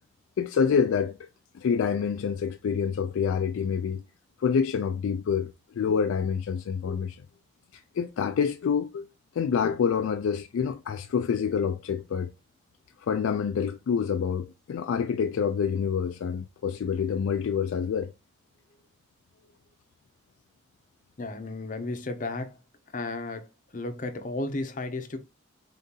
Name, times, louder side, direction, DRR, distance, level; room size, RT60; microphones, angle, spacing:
voice 1, 0.4-1.3 1.5-4.0 4.4-7.2 7.7-9.1 9.3-12.3 13.0-18.1, left 6 dB, 85° left, 0.3 m, -27 dB
voice 2, 21.2-22.6 22.9-23.5 23.7-25.2, left 2 dB, 40° left, 0.6 m, -33 dB
3.8 x 2.8 x 3.7 m
head